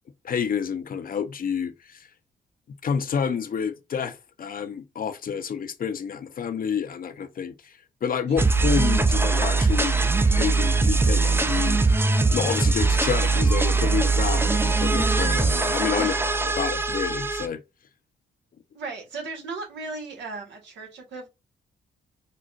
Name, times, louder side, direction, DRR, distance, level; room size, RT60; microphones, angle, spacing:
voice 1, 0.2-2.1 2.8-7.7 8.0-10.0 10.3-11.8 12.3-16.1 16.6-17.6, left 7 dB, 50° left, 0.6 m, -29 dB
sound 1, 8.4-17.5, right 3 dB, 10° right, 0.4 m, -21 dB
voice 2, 18.7-21.3, right 3 dB, 80° right, 1.1 m, -36 dB
3.9 x 2.1 x 2.4 m
supercardioid pair, 55°, 18 cm